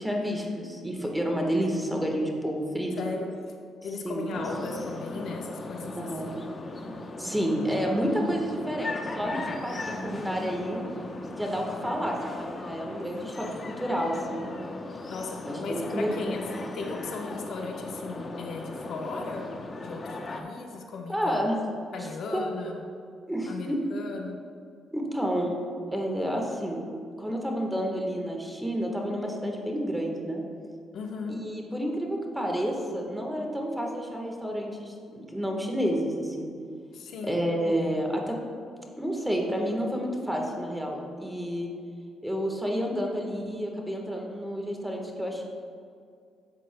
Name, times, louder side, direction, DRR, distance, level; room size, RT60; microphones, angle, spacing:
voice 1, 0.0-2.9 4.0-4.4 6.0-6.3 7.2-10.8 11.3-13.5 13.8-14.4 15.4-16.1 21.1-21.6 22.3-22.4 23.3-23.8 24.9-25.5 25.9-26.8 27.2-30.4 31.3-36.5 37.2-38.4 39.0-41.7 42.2-45.4, equal, 5° right, 0 dB, 1.3 m, -30 dB
voice 2, 3.0-3.3 3.8-6.3 15.1-16.4 16.7-19.4 19.8-21.5 21.9-22.7 23.5-24.4 30.9-31.4 36.9-37.4, left 3 dB, 70° left, 1 dB, 1.0 m, -36 dB
sound 1, 4.3-20.4, left 2 dB, 35° left, 0.8 m, -38 dB
11.0 x 7.7 x 2.2 m, 2.3 s
cardioid pair, 90°, 0 cm